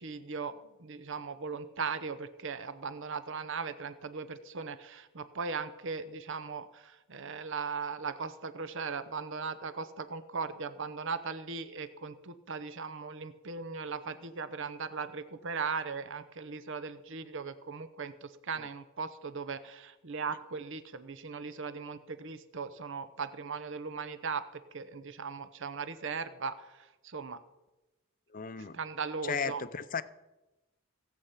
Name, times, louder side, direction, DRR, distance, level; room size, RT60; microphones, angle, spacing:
voice 1, 0.0-27.4 28.7-29.6, right 5 dB, 60° right, 0.8 m, -38 dB
voice 2, 28.3-28.8 29.2-30.0, left 6 dB, 40° left, 0.6 m, -35 dB
17.5 x 8.3 x 5.7 m
head